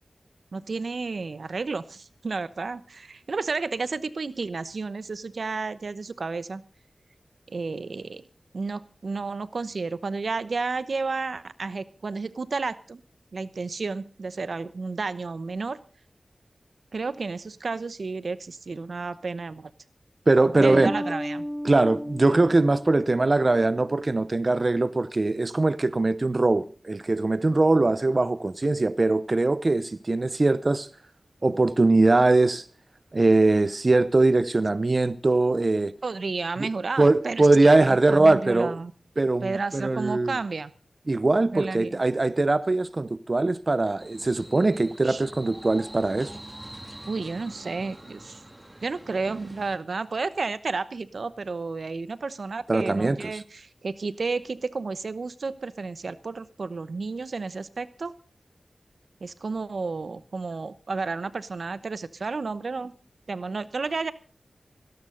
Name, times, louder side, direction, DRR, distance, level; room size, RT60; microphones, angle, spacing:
voice 1, 0.5-6.6 7.5-8.2 8.5-13.0 13.3-15.8 16.9-19.7 20.6-21.5 36.0-37.5 37.9-38.9 39.4-40.7 41.5-42.0 45.0-45.2 47.1-48.4 48.8-58.1 59.2-62.9 63.3-64.1, right 4 dB, 75° right, 0.9 m, -31 dB
voice 2, 20.3-20.9 21.6-30.9 31.4-32.7 33.1-35.9 36.6-36.7 37.0-38.8 39.2-40.4 41.1-46.3 52.7-53.4, right 2 dB, 50° right, 0.7 m, -21 dB
Bass guitar, 20.6-24.1, equal, 5° right, 0.8 m, -34 dB
sound 1, 44.0-49.8, right 1 dB, 25° right, 2.5 m, -44 dB
17.5 x 17.0 x 3.9 m
cardioid pair, 40°, 0 cm